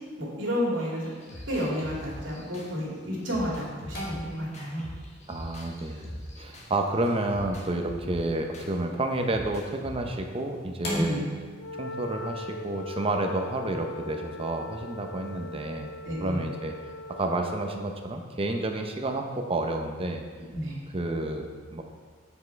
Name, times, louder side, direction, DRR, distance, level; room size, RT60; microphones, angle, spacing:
voice 1, 0.2-1.1 1.5-4.9 10.9-11.3 16.0-16.4 20.5-20.8, equal, 80° right, -4 dB, 2.4 m, -31 dB
sound 1, 0.8-6.8 7.3-8.7 9.3-10.1, left 1 dB, 35° left, 1.0 m, -43 dB
sound 2, 1.2-21.1, left 1 dB, 55° left, 2.1 m, -46 dB
voice 2, 5.3-11.2 11.8-15.9 16.2-16.7 17.1-20.2 20.9-21.8, right 2 dB, 30° right, 4 dB, 0.7 m, -30 dB
Wind instrument woodwind instrument, 11.5-17.8, left 2 dB, 80° left, 0.4 m, -40 dB
8.2 x 5.5 x 4.5 m, 1.5 s
head